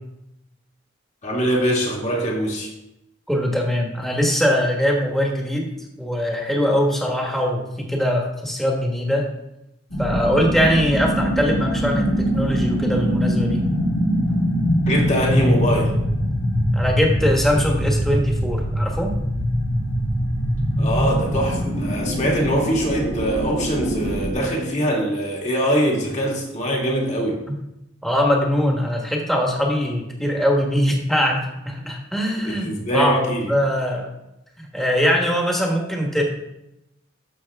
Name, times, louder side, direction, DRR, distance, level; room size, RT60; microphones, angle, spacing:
voice 1, 1.2-2.7 14.9-15.9 20.8-27.4 32.4-33.5, equal, 35° left, -1 dB, 2.1 m, -23 dB
voice 2, 3.3-5.7 6.0-9.2 10.0-13.7 16.7-19.1 28.0-34.1 34.6-36.2, equal, ahead, 0 dB, 1.4 m, -22 dB
sound 1, 9.9-24.3, equal, 75° left, 3.0 m, -23 dB
12.5 x 6.4 x 3.6 m, 0.87 s
head